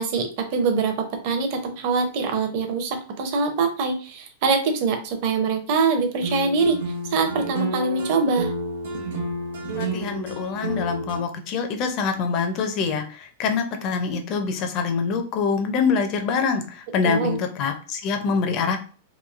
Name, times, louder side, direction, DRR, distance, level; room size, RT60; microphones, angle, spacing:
voice 1, 0.0-6.8 7.1-8.5 17.0-17.4, right 4 dB, 40° right, 5 dB, 0.5 m, -23 dB
sound 1, 6.2-11.2, right 2 dB, 70° right, 0.9 m, -30 dB
voice 2, 9.8-18.8, left 5 dB, 30° left, 5 dB, 0.4 m, -25 dB
3.0 x 2.5 x 2.4 m, 0.40 s
supercardioid pair, 175°, 0 cm